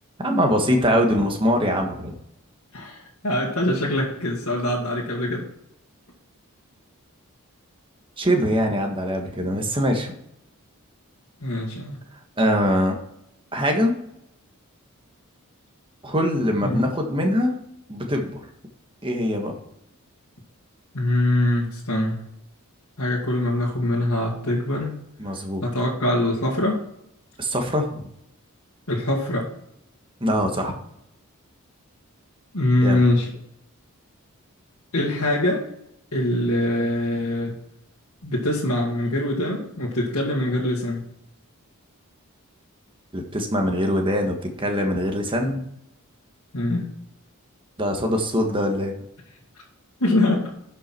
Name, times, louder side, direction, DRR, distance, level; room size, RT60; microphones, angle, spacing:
voice 1, 0.2-2.2 8.2-10.1 12.4-13.0 13.5-13.9 16.0-17.5 17.9-18.4 19.0-19.5 25.2-25.7 27.4-28.1 30.2-30.8 32.8-33.0 43.1-45.6 47.8-48.9, equal, 25° right, 2 dB, 1.5 m, -23 dB
voice 2, 2.7-5.5 11.4-12.0 16.6-16.8 20.9-22.3 23.0-24.9 25.6-26.8 28.9-29.5 32.5-33.3 34.9-35.7 36.1-37.6 38.2-41.1 46.5-46.9 50.0-50.5, left 1 dB, 70° left, -5 dB, 2.1 m, -23 dB
11.5 x 5.7 x 4.5 m, 0.78 s
head